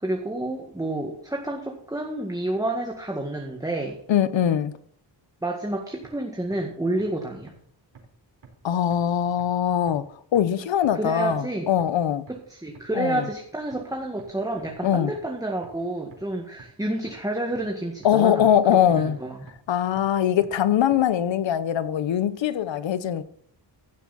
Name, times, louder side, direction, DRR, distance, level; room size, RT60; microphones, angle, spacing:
voice 1, 0.0-4.0 5.4-7.6 10.9-11.7 12.3-19.4, right 1 dB, 10° right, 1.9 m, -29 dB
voice 2, 4.1-4.7 8.6-10.0 10.3-12.2 12.9-13.3 14.8-15.1 18.0-19.2 19.7-23.2, left 10 dB, 80° left, 1.0 m, -22 dB
sound 1, 6.0-6.1 6.5-6.6 7.0-7.1 7.5-7.6 8.0-8.1 8.4-8.5 8.9-9.0 9.4-9.5 9.9-10.0 10.4-10.5 10.8-10.9 11.3-11.4 11.8-11.9 12.3-12.4 12.8-12.9 13.2-13.3 13.7-13.8 14.2-14.3 14.7-14.8 15.2-15.3 15.6-15.7 16.1-16.2 16.6-16.7 17.1-17.2 17.6-17.7 18.0-18.1 18.5-18.6 19.0-19.1 19.5-19.6 20.0-20.1 20.4-20.5 20.9-21.0, right 7 dB, 60° right, 4.8 m, -47 dB
15.5 x 7.2 x 4.3 m
cardioid pair, 85°, 44 cm